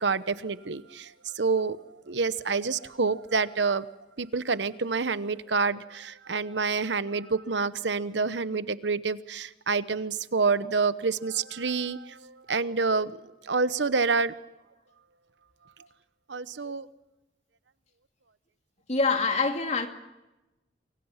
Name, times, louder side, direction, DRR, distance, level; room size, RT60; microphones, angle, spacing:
voice 1, 0.0-3.9 4.2-13.2 13.4-14.3 16.3-16.9, right 4 dB, 75° right, 14 dB, 1.0 m, -28 dB
voice 2, 18.9-19.9, left 4 dB, 40° left, 5 dB, 2.2 m, -25 dB
28.5 x 24.0 x 5.8 m, 1.0 s
head